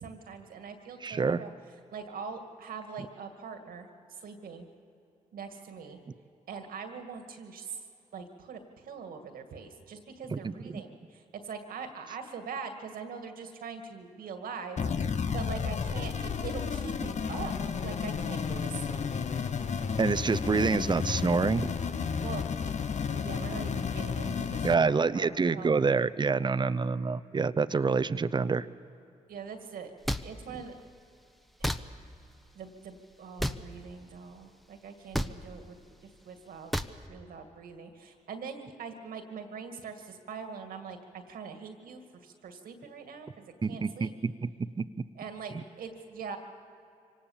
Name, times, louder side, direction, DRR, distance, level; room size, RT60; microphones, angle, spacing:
voice 1, 0.0-1.5 1.9-4.7 5.3-6.0 6.5-7.8 8.1-14.8 15.3-19.2 22.2-22.4 23.1-25.8 29.3-29.9 30.2-30.8 31.6-31.8 32.5-35.8 36.0-36.7 37.1-44.1 45.2-46.4, right 5 dB, 80° right, 6 dB, 2.1 m, -42 dB
voice 2, 1.0-1.4 10.3-10.8 20.0-21.7 24.6-28.7 43.6-44.5 44.8-44.9, right 4 dB, 30° right, 13 dB, 0.7 m, -27 dB
sound 1, 14.8-24.8, left 6 dB, 50° left, 0.9 m, -32 dB
sound 2, 30.1-30.2 31.6-31.8 33.4-33.6 35.1-35.3 36.7-36.9, equal, ahead, 1.0 m, -29 dB
24.5 x 18.5 x 7.3 m, 2.7 s
supercardioid pair, 55°, 15 cm